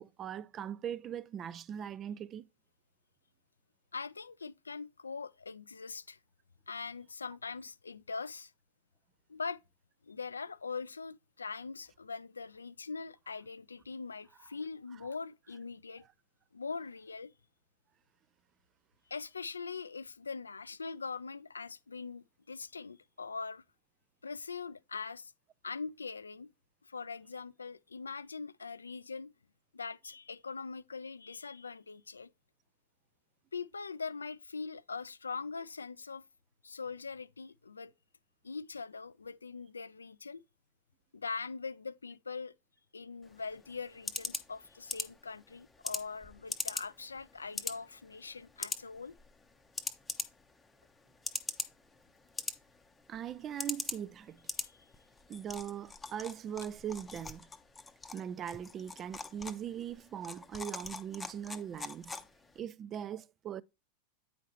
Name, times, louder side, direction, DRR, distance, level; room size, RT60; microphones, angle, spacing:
voice 1, 0.0-2.5 53.1-54.4 55.3-57.5 58.1-62.1 62.6-63.6, right 9 dB, 30° right, 0.3 m, -40 dB
voice 2, 3.9-6.2 6.7-8.5 9.3-9.6 10.0-16.0 16.5-17.3 19.1-23.6 24.2-25.3 25.6-26.5 26.8-29.3 29.7-32.3 33.5-36.2 36.6-37.9 38.4-40.4 41.1-42.5 42.9-49.2 54.6-54.9, left 4 dB, 75° left, 0.3 m, -42 dB
sound 1, 43.2-62.6, left 4 dB, 10° left, 0.7 m, -43 dB
9.1 x 5.0 x 3.1 m
figure-of-eight pair, 90°, 0 cm